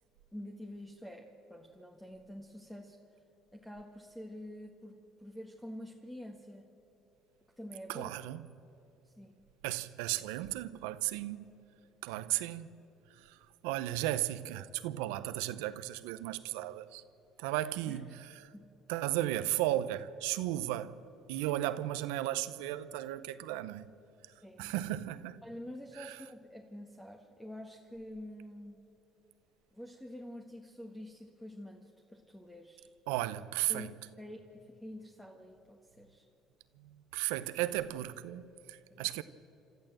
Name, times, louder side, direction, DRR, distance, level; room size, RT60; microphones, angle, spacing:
voice 1, 0.3-3.0 3.5-6.7 7.5-8.1 9.0-9.4 17.9-18.2 18.5-18.8 24.4-24.7 25.4-28.8 29.7-32.9 33.7-36.3 38.9-39.1, left 1 dB, 10° left, 1.7 m, -47 dB
voice 2, 7.9-8.5 9.6-11.5 12.0-12.8 13.1-17.0 17.4-18.5 18.9-20.9 21.3-23.9 24.6-25.4 26.0-26.2 33.1-33.9 36.8-39.2, right 15 dB, 85° right, 0.7 m, -35 dB
27.5 x 13.0 x 7.7 m
supercardioid pair, 80°, 0 cm